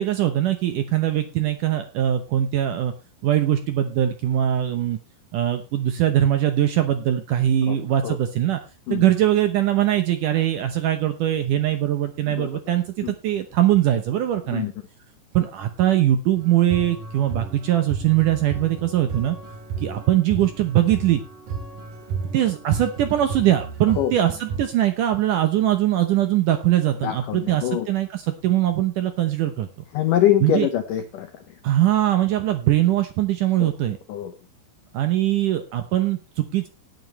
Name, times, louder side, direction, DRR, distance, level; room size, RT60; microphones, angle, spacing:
voice 1, 0.0-2.9 3.2-5.0 5.3-8.6 8.9-14.7 15.3-19.4 19.8-21.2 22.3-29.7 30.4-30.7 31.6-34.0 34.9-36.7, right 12 dB, 80° right, 8 dB, 1.9 m, -21 dB
sound 1, 16.4-24.6, right 5 dB, 55° right, 4.1 m, -33 dB
voice 2, 27.0-27.9 29.9-31.3 33.6-33.7 34.1-34.3, left 11 dB, 85° left, 8 dB, 1.9 m, -23 dB
17.5 x 9.1 x 3.2 m, 0.28 s
omnidirectional pair, 5.0 m